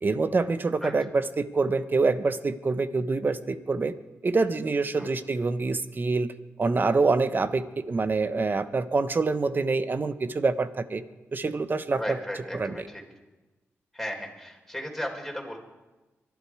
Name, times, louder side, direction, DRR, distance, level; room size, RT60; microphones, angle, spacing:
voice 1, 0.0-3.9 4.2-6.3 6.6-11.0 11.3-12.2 12.5-12.9, right 3 dB, 40° right, 11 dB, 1.1 m, -26 dB
voice 2, 11.9-13.0 13.9-15.6, equal, ahead, 0 dB, 4.3 m, -35 dB
24.0 x 12.0 x 4.8 m, 1.1 s
cardioid pair, 75°, 5 cm